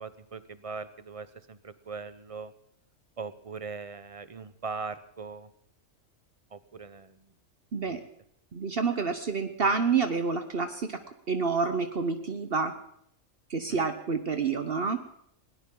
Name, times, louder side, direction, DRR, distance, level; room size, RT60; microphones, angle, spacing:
voice 1, 0.0-2.5 3.2-5.5 6.5-7.2 7.8-8.0 13.7-13.8, right 4 dB, 35° right, 13 dB, 0.6 m, -40 dB
voice 2, 8.5-11.0 11.3-12.7 13.5-15.0, right 5 dB, 50° right, 8 dB, 1.1 m, -28 dB
20.5 x 18.0 x 3.8 m, 0.71 s
omnidirectional pair, 1.3 m